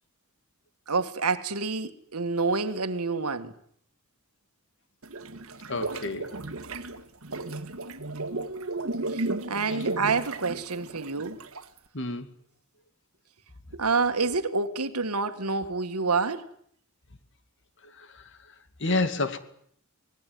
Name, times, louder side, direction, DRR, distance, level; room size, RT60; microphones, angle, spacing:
voice 1, 0.9-3.5 9.1-11.4 13.7-16.5, right 4 dB, 90° right, 1.8 m, -28 dB
sound 1, 5.0-11.8, right 2 dB, 70° right, 1.7 m, -34 dB
voice 2, 5.7-6.4 11.9-12.3 17.8-18.3 18.8-19.4, left 2 dB, 55° left, 2.5 m, -29 dB
25.0 x 20.5 x 9.4 m
head